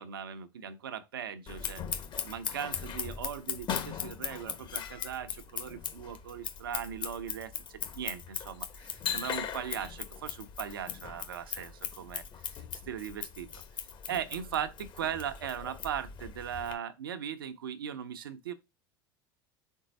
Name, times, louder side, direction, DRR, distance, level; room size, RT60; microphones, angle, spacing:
voice 1, 0.0-13.5 14.1-18.5, right 9 dB, 85° right, 0.8 m, -39 dB
Scissors, 1.5-16.7, left 8 dB, 40° left, 1.3 m, -39 dB
4.5 x 4.0 x 5.2 m
hypercardioid pair, 85°, 11 cm